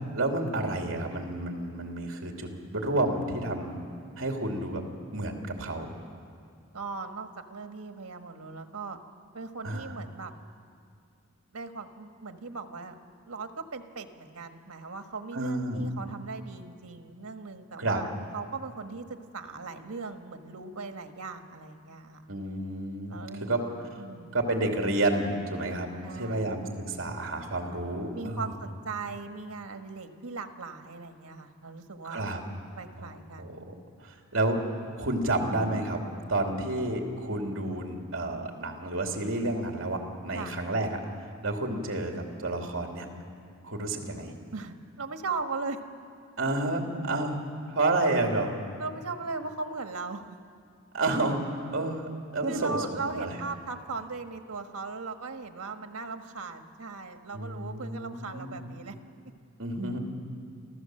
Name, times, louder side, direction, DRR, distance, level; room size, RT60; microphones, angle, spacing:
voice 1, 0.1-3.8 4.2-4.8 5.1-5.9 9.6-9.9 15.3-15.9 17.8-18.0 22.3-23.1 23.4-23.6 24.3-25.9 26.2-28.5 32.1-32.4 33.0-33.1 33.4-33.7 34.0-34.6 35.0-36.0 36.3-41.0 41.4-43.1 43.6-44.3 46.4-47.4 47.7-48.5 50.9-51.4 51.7-52.8 53.1-53.4 57.3-58.7 59.6-60.0, right 2 dB, 65° right, 2 dB, 2.7 m, -30 dB
voice 2, 6.7-9.0 9.3-10.3 11.5-13.0 13.3-22.2 23.1-23.6 24.0-24.4 26.0-26.5 28.1-32.2 32.7-33.6 40.3-40.5 44.5-45.8 48.8-50.3 52.5-59.0, right 4 dB, 90° right, 6 dB, 1.4 m, -38 dB
29.0 x 14.5 x 7.7 m, 2.3 s
head